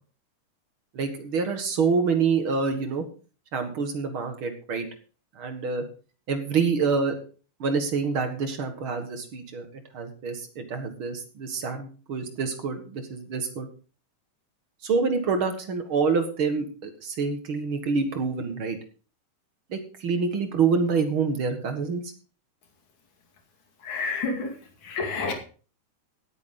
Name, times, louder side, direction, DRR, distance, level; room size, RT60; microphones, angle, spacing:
voice 1, 0.9-3.0 3.5-4.9 5.4-5.9 6.3-7.2 7.6-9.7 9.9-13.7 14.8-18.8 19.7-22.0, right 5 dB, 45° right, 7 dB, 2.1 m, -26 dB
voice 2, 23.8-25.4, left 4 dB, 65° left, 4 dB, 3.8 m, -30 dB
17.0 x 9.0 x 3.9 m, 0.38 s
omnidirectional pair, 3.7 m